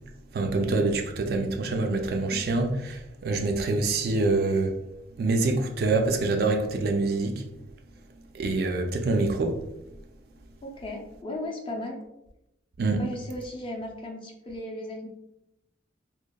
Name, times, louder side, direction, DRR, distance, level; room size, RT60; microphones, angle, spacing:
voice 1, 0.3-4.7 5.2-7.4 8.3-9.6 12.8-13.0, right 3 dB, 55° right, 0.3 m, -25 dB
voice 2, 10.6-12.0 12.9-15.1, left 1 dB, 30° left, 0.4 m, -36 dB
2.8 x 2.0 x 2.2 m
head